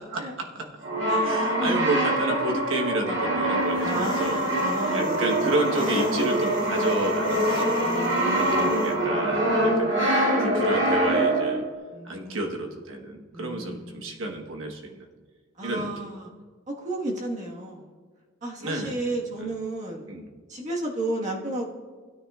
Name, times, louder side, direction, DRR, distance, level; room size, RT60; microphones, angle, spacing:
voice 1, 0.1-0.6 1.2-4.4 4.9-7.8 8.3-9.9 10.4-11.6 12.0-15.1 15.6-15.9 18.6-19.0 19.4-19.5 20.1-20.3, right 2 dB, 80° right, 2 dB, 1.2 m, -30 dB
Brass instrument, 0.8-11.6, right 1 dB, 65° right, 2.3 m, -24 dB
voice 2, 1.1-1.9 3.8-5.5 7.8-9.8 11.9-12.5 13.3-14.2 15.6-16.3 16.7-17.9 18.4-20.0 20.5-21.7, right 1 dB, 40° right, -2 dB, 1.5 m, -33 dB
Engine, 3.7-9.0, left 2 dB, 45° left, 1.3 m, -35 dB
16.0 x 9.4 x 2.4 m, 1.5 s
head